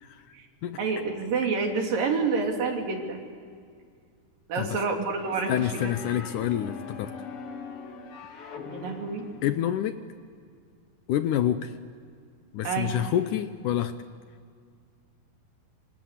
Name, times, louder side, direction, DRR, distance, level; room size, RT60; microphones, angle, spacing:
voice 1, 0.8-3.2 4.5-5.9 8.6-9.2 12.6-12.9, right 4 dB, 65° right, 2 dB, 4.5 m, -28 dB
sound 1, 5.2-9.9, left 5 dB, 50° left, 2.1 m, -42 dB
voice 2, 5.5-7.2 9.4-10.0 11.1-11.7 12.5-13.9, left 11 dB, 70° left, 10 dB, 2.1 m, -27 dB
27.5 x 25.5 x 8.3 m, 2.1 s
omnidirectional pair, 4.2 m